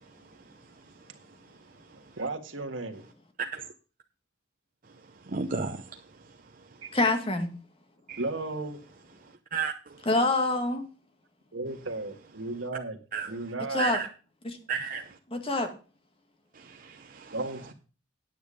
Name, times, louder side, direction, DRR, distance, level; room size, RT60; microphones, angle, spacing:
voice 1, 2.2-3.0 6.8-6.9 8.2-8.8 11.5-13.0 13.3-13.9 17.3-17.7, right 2 dB, 75° right, 1.7 m, -34 dB
voice 2, 5.3-5.8 8.1-8.2 9.5-9.7 13.1-13.3 13.8-14.1 14.7-15.0 16.7-17.3, right 5 dB, 45° right, 0.8 m, -32 dB
voice 3, 6.9-7.5 10.1-10.8 13.7-14.0 14.4-14.6 15.3-15.7, left 2 dB, 30° left, 1.9 m, -26 dB
9.4 x 8.5 x 5.1 m
head